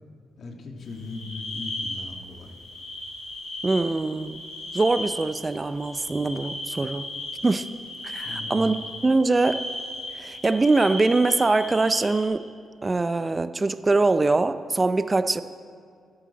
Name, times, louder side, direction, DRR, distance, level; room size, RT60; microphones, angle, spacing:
voice 1, 0.4-2.6 8.2-8.7, left 2 dB, 60° left, 2 dB, 1.8 m, -38 dB
sound 1, 0.8-12.3, left 1 dB, 90° left, 3.7 m, -36 dB
voice 2, 3.6-4.4 4.7-7.1 7.4-7.7 8.0-8.7 9.0-9.6 10.2-12.4 12.8-15.4, right 3 dB, 30° right, 12 dB, 0.5 m, -23 dB
13.5 x 12.0 x 4.1 m, 2.2 s
supercardioid pair, 65°, 0 cm